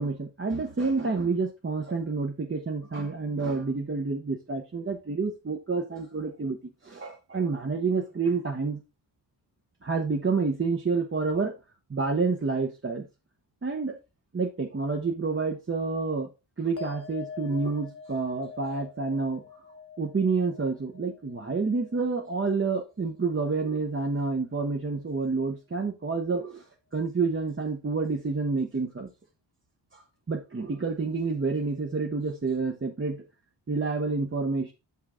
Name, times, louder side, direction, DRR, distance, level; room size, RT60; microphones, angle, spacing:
voice 1, 0.0-8.8 9.8-11.5 11.9-13.1 13.6-14.0 14.3-16.3 16.6-19.4 20.0-26.6 26.9-29.1 29.9-30.0 30.3-33.2 33.7-34.7, right 4 dB, 30° right, 2 dB, 0.9 m, -28 dB
sound 1, 16.8-23.5 23.7-24.4, left 6 dB, 30° left, 1.1 m, -46 dB
7.2 x 5.7 x 3.6 m, 0.27 s
wide cardioid pair, 120°, 44 cm